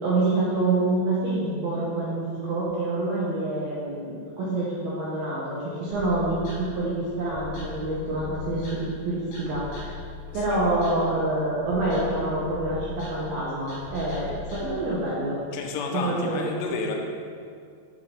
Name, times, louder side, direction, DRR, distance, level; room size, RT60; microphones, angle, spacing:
voice 1, 0.0-10.0 10.3-15.4 15.9-16.6, right 2 dB, 75° right, -8 dB, 2.3 m, -27 dB
sound 1, 5.9-14.6, left 4 dB, 60° left, 3.7 m, -40 dB
voice 2, 15.5-17.0, left 4 dB, 80° left, 0 dB, 2.5 m, -31 dB
10.5 x 5.6 x 3.4 m, 2.3 s
omnidirectional pair, 5.8 m